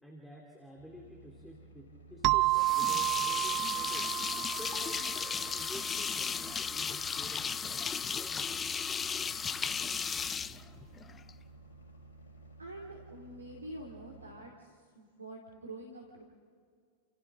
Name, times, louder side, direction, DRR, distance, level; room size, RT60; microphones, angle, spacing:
voice 1, 0.0-4.1 4.6-7.9 8.2-8.6, equal, 5° left, 0 dB, 3.2 m, -50 dB
sound 1, 0.8-14.3, right 2 dB, 65° left, 7.4 m, -54 dB
sound 2, 2.2-6.6, right 21 dB, 40° right, 0.5 m, -32 dB
sound 3, 2.5-11.3, left 6 dB, 20° left, 0.5 m, -35 dB
voice 2, 12.6-16.2, right 1 dB, 80° right, 1 dB, 2.5 m, -46 dB
29.5 x 28.5 x 3.7 m, 2.1 s
figure-of-eight pair, 90°, 0 cm